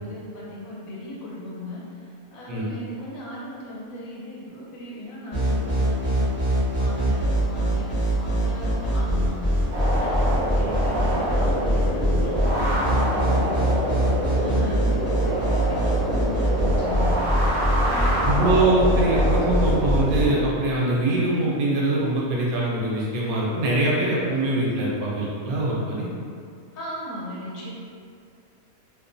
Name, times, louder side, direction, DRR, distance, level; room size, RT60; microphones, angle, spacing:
voice 1, 0.0-13.9 14.4-18.8 26.7-27.7, equal, 75° left, -5 dB, 1.0 m, -37 dB
sound 1, 5.3-20.3, equal, 10° left, 0.6 m, -23 dB
sound 2, 9.7-20.4, right 1 dB, 50° right, 0.5 m, -26 dB
voice 2, 18.2-26.1, right 2 dB, 80° right, -4 dB, 1.0 m, -23 dB
2.6 x 2.1 x 2.5 m, 2.3 s
omnidirectional pair, 1.5 m